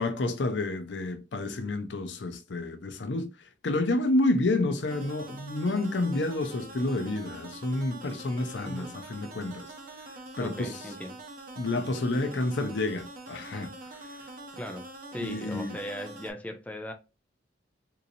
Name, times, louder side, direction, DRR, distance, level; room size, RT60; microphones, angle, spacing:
voice 1, 0.0-9.7 10.4-10.7 11.6-13.7 14.0-14.2 15.2-15.8, left 2 dB, 80° left, 0.6 m, -29 dB
sound 1, 4.9-16.3, right 2 dB, 50° right, 0.7 m, -45 dB
voice 2, 10.4-11.2 14.6-14.9 15.1-16.9, equal, 10° left, 0.4 m, -38 dB
3.9 x 2.8 x 2.6 m
head